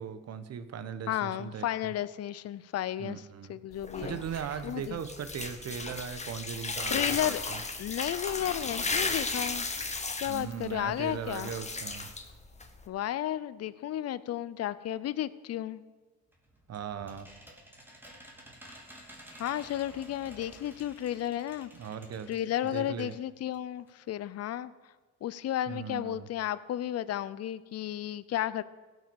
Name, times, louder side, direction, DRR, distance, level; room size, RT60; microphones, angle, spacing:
voice 1, 0.0-1.9 3.0-3.6 4.0-7.6 10.2-12.1 16.7-17.3 21.7-22.4 22.7-23.1 25.7-26.3, right 7 dB, 55° right, 11 dB, 1.1 m, -38 dB
voice 2, 1.1-3.2 3.5-4.2 4.6-5.0 6.9-7.4 7.8-9.7 10.2-11.5 12.9-15.8 19.4-21.7 22.3-24.7 25.2-28.6, left 12 dB, 55° left, 16 dB, 0.6 m, -33 dB
sound 1, 3.7-12.9, left 3 dB, 20° left, 1.4 m, -35 dB
sound 2, 16.3-23.2 23.5-23.6 23.9-24.0, right 1 dB, 5° right, 2.8 m, -52 dB
16.0 x 6.4 x 6.9 m, 1.4 s
cardioid pair, 90°, 30 cm